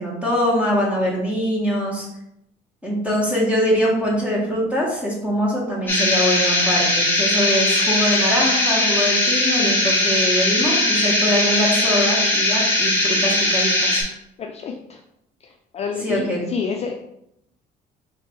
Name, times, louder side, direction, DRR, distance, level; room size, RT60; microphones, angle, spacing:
voice 1, 0.0-2.1 2.8-14.0 16.0-16.4, equal, 5° right, -4 dB, 1.6 m, -23 dB
sound 1, 5.9-14.0, left 1 dB, 10° left, 1.3 m, -19 dB
voice 2, 14.4-15.0 15.4-16.9, left 6 dB, 40° left, 3 dB, 0.4 m, -29 dB
3.3 x 3.0 x 4.5 m, 0.79 s
cardioid pair, 110°, 17 cm